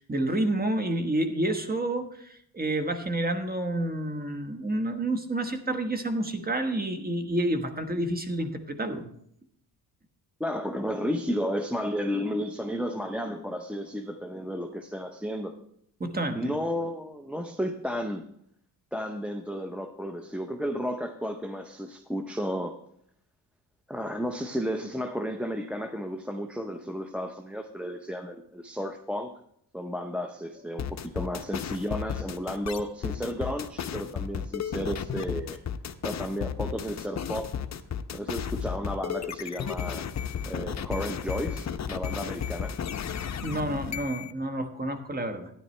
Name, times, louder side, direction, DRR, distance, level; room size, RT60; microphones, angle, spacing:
voice 1, 0.0-9.1 16.0-16.5 43.4-45.5, right 1 dB, 20° right, 7 dB, 1.2 m, -29 dB
voice 2, 10.4-15.5 16.3-18.3 18.9-22.7 23.9-29.3 29.7-35.6 36.0-37.5 38.1-40.1 40.5-42.8, equal, 5° right, 4 dB, 0.6 m, -33 dB
sound 1, 30.8-44.3, left 8 dB, 40° left, 0.7 m, -33 dB
12.5 x 9.9 x 3.2 m, 0.68 s
cardioid pair, 90°, 43 cm